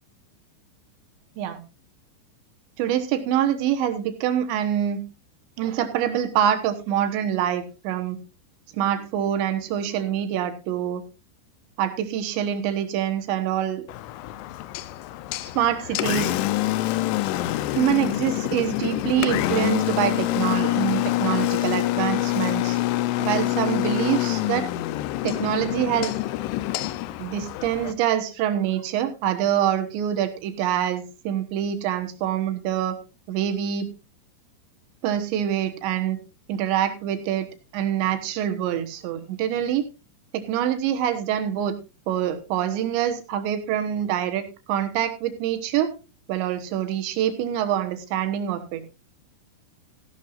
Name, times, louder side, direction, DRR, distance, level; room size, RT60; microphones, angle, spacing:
voice 1, 2.8-5.0 5.6-8.2 8.7-11.0 11.8-13.9 15.4-16.3 17.8-22.8 23.2-24.7 25.2-26.1 27.2-33.0 33.3-33.9 35.0-36.2 36.5-37.5 37.7-39.9 40.3-41.8 42.1-45.9 46.3-48.8, right 10 dB, 75° right, 9 dB, 3.5 m, -25 dB
Engine, 13.9-27.9, left 16 dB, 85° left, 3.2 m, -26 dB
15.5 x 11.5 x 2.5 m, 0.28 s
omnidirectional pair, 5.3 m